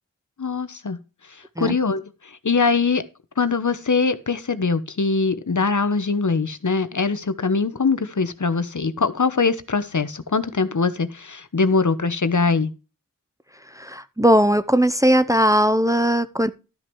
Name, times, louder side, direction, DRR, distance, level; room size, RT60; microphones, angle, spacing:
voice 1, 0.4-1.0 1.6-2.0 2.4-3.0 3.4-12.7, left 4 dB, 65° left, 1.1 m, -22 dB
voice 2, 13.7-16.5, equal, 10° right, 0.7 m, -18 dB
12.5 x 6.1 x 4.6 m
wide cardioid pair, 50°, 32 cm